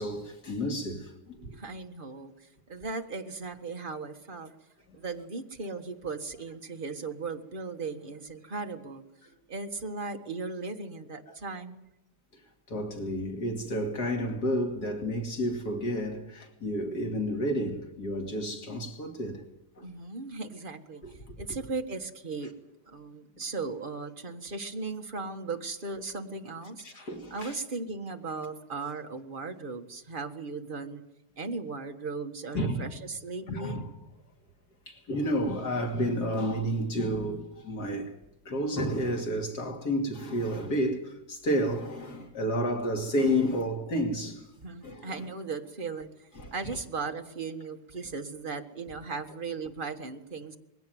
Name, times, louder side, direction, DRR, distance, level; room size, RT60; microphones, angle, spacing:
voice 1, 0.0-1.6 4.9-5.0 11.3-11.4 12.7-19.4 19.8-19.9 26.8-27.6 32.5-32.9 33.5-33.9 34.9-38.1 38.4-44.5 44.8-45.1 46.4-46.5, equal, 65° left, 3.2 m, -31 dB
voice 2, 1.5-4.5 4.9-9.0 9.5-11.8 19.8-22.5 22.9-27.0 27.3-31.0 31.4-33.8 44.6-50.6, right 4 dB, 30° right, 1.7 m, -37 dB
21.5 x 17.0 x 9.3 m
omnidirectional pair, 1.8 m